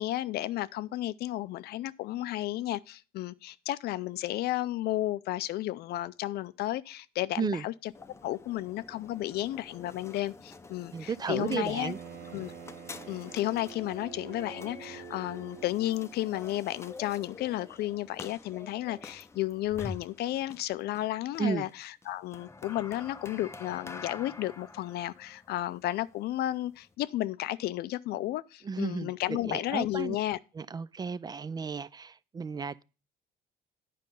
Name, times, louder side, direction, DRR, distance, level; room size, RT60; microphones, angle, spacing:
voice 1, 0.0-7.9 8.2-11.9 12.3-12.5 13.1-30.4, left 15 dB, 70° left, 0.5 m, -33 dB
sound 1, 7.9-26.9, left 3 dB, 15° left, 0.6 m, -48 dB
voice 2, 10.9-12.0 21.4-21.7 28.6-30.2 30.6-32.8, right 6 dB, 25° right, 0.3 m, -33 dB
Bowed string instrument, 11.4-16.2, right 8 dB, 70° right, 1.0 m, -47 dB
9.2 x 5.2 x 5.3 m
cardioid pair, 110°, 17 cm